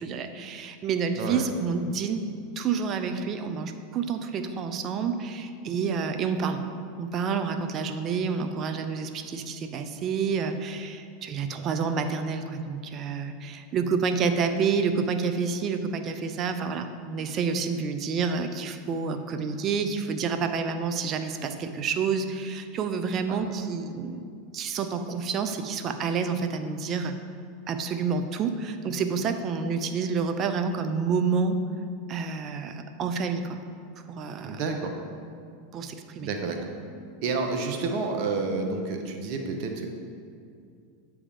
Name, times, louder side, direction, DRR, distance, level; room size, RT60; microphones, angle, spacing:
voice 1, 0.0-2.2 2.6-6.6 7.0-24.2 24.5-27.1 27.7-31.6 32.1-33.6 34.1-34.6 35.7-36.3, right 5 dB, 40° right, 8 dB, 0.6 m, -29 dB
voice 2, 1.1-1.4 23.3-23.4 34.4-34.9 36.2-36.7 37.2-39.9, right 4 dB, 55° right, 3 dB, 1.0 m, -29 dB
8.4 x 3.5 x 5.1 m, 2.4 s
hypercardioid pair, 100°, 0 cm